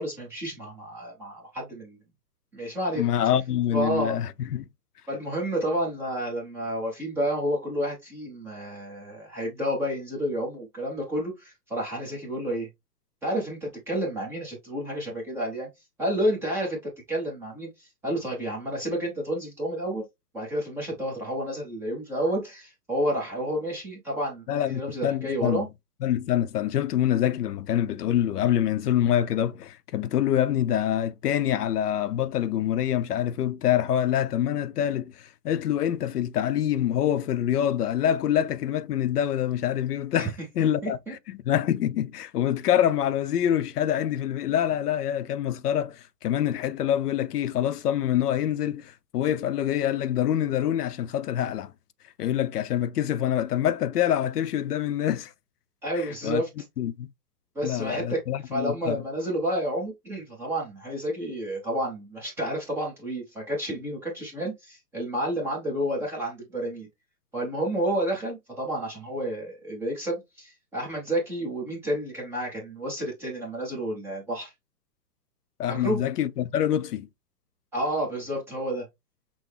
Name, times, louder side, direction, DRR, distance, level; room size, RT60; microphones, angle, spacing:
voice 1, 0.0-2.0 2.5-3.1 3.7-4.2 5.1-12.7 13.2-15.7 16.0-20.0 20.3-25.7 40.2-40.3 40.8-41.1 55.8-56.5 57.5-58.2 58.5-66.9 67.3-74.5 75.7-76.0 77.7-78.9, right 1 dB, 5° right, 0.6 m, -30 dB
voice 2, 3.0-4.7 24.5-25.6 26.0-51.7 52.2-55.3 56.2-56.4 56.8-57.1 57.6-59.0 75.6-77.1, left 10 dB, 70° left, 0.6 m, -26 dB
6.1 x 2.0 x 3.3 m
hypercardioid pair, 140°, 49 cm